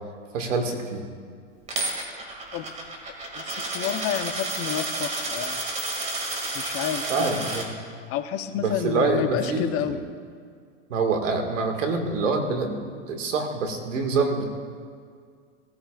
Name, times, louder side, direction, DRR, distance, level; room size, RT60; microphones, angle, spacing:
voice 1, 0.3-1.0 7.1-7.7 8.6-10.0 10.9-14.4, right 4 dB, 80° right, 4 dB, 2.0 m, -26 dB
Coin (dropping), 1.7-7.6, right 2 dB, 20° right, 2.3 m, -31 dB
voice 2, 3.4-5.6 6.5-7.6 8.1-10.0, left 10 dB, 40° left, 9 dB, 0.8 m, -30 dB
18.5 x 14.0 x 2.4 m, 2.1 s
hypercardioid pair, 110°, 37 cm